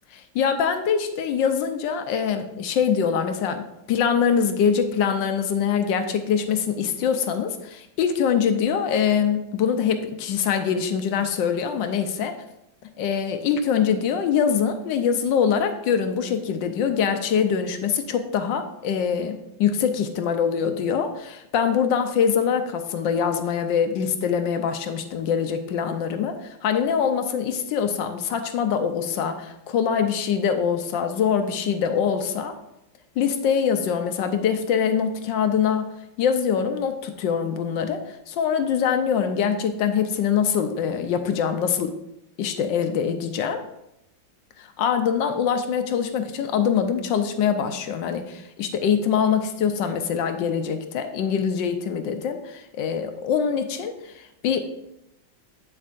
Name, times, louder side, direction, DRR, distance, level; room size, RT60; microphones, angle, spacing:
voice 1, 0.1-12.4 13.0-32.6 33.2-35.9 36.2-41.9 42.4-43.6 44.6-54.6, left 7 dB, 80° left, 7 dB, 1.3 m, -24 dB
8.2 x 7.8 x 2.5 m, 0.85 s
omnidirectional pair, 2.1 m